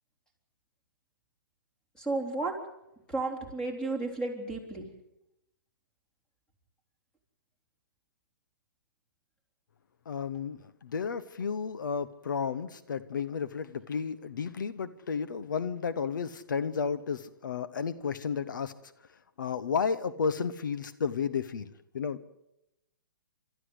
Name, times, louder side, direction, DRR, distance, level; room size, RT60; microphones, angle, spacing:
voice 1, 2.0-2.5 3.1-4.9, right 3 dB, 5° left, 3 dB, 3.9 m, -33 dB
voice 2, 10.1-18.9 19.4-22.3, left 6 dB, 75° left, 13 dB, 1.0 m, -32 dB
29.5 x 13.5 x 8.1 m, 0.89 s
hypercardioid pair, 145°, 11 cm